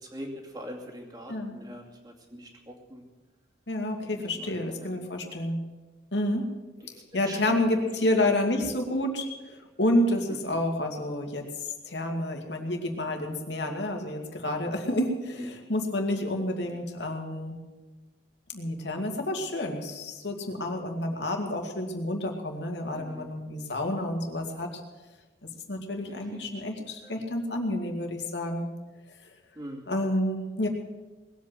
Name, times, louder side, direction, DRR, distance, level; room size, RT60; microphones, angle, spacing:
voice 1, 0.0-3.1 4.2-4.9 6.8-6.9 7.2-7.9 10.3-10.6 15.3-15.5 16.4-16.8 23.0-23.3 26.1-27.2 29.5-29.9, equal, 20° right, 0 dB, 2.5 m, -43 dB
voice 2, 3.7-5.6 6.1-6.5 6.9-17.6 18.5-24.7 25.7-28.6 29.9-30.7, left 1 dB, 80° left, 2 dB, 2.5 m, -29 dB
20.0 x 8.2 x 7.9 m, 1.2 s
head